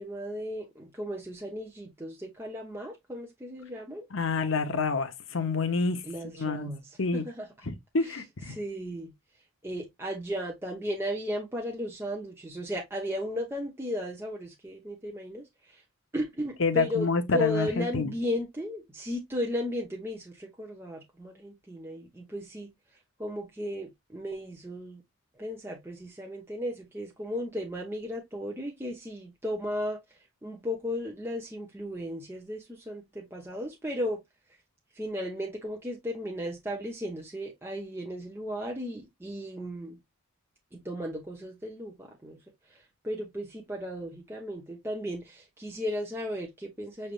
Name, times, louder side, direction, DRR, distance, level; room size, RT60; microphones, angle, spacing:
voice 1, 0.0-4.1 6.0-7.5 8.0-8.2 8.5-9.1 9.6-15.8 16.1-17.1 17.3-22.7 23.2-25.0 25.4-30.0 30.4-34.2 34.9-40.0 40.7-42.4 42.7-47.1, equal, 10° right, 0.8 m, -35 dB
voice 2, 4.1-6.0 6.4-6.7 7.0-7.2 7.7-8.6 16.6-18.1, left 4 dB, 65° left, 0.9 m, -28 dB
6.5 x 3.4 x 2.4 m
head